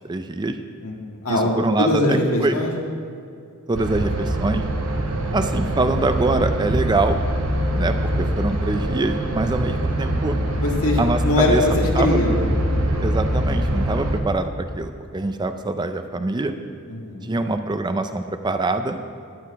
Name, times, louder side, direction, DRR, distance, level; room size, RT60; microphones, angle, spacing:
voice 1, 0.0-0.6 1.3-2.6 3.7-4.6 5.3-7.2 7.7-10.4 11.0-12.2 13.0-16.6 17.2-19.0, right 2 dB, 20° right, 8 dB, 0.4 m, -24 dB
voice 2, 0.8-2.7 10.6-11.0 11.2-12.3 16.9-17.3, left 2 dB, 85° left, -1 dB, 1.9 m, -22 dB
sound 1, 3.7-14.2, right 1 dB, 65° right, 1.0 m, -23 dB
11.5 x 4.9 x 8.3 m, 2.5 s
head